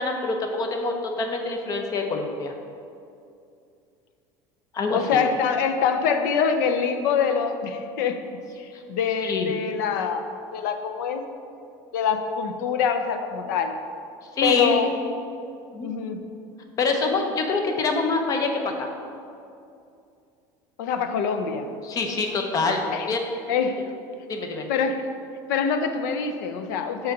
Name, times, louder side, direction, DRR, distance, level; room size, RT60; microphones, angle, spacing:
voice 1, 0.0-2.5 4.7-5.2 8.7-8.8 9.2-9.5 14.2-14.8 15.7-15.9 16.8-18.9 21.8-23.2 24.3-24.7, left 3 dB, 35° left, 4 dB, 0.8 m, -25 dB
voice 2, 4.9-10.3 10.5-11.2 11.9-13.7 14.4-14.9 15.8-16.2 20.8-21.7 22.9-23.1 23.5-23.8 24.7-25.0 25.5-27.1, left 6 dB, 90° left, 7 dB, 0.6 m, -25 dB
6.8 x 4.0 x 5.3 m, 2.5 s
cardioid pair, 140°, 10 cm